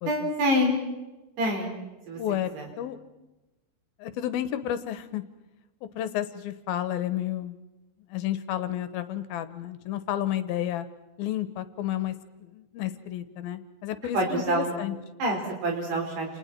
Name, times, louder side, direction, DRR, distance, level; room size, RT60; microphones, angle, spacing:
voice 1, 0.1-0.8 1.4-1.8 2.1-2.2 2.5-2.7 14.1-14.7 15.2-16.3, equal, 85° right, 0 dB, 7.2 m, -26 dB
voice 2, 2.2-2.5 2.8-3.0 4.0-5.2 6.0-7.6 8.1-10.9 11.2-15.0, left 12 dB, 75° left, 11 dB, 2.6 m, -31 dB
29.0 x 28.5 x 4.5 m, 1.1 s
omnidirectional pair, 4.7 m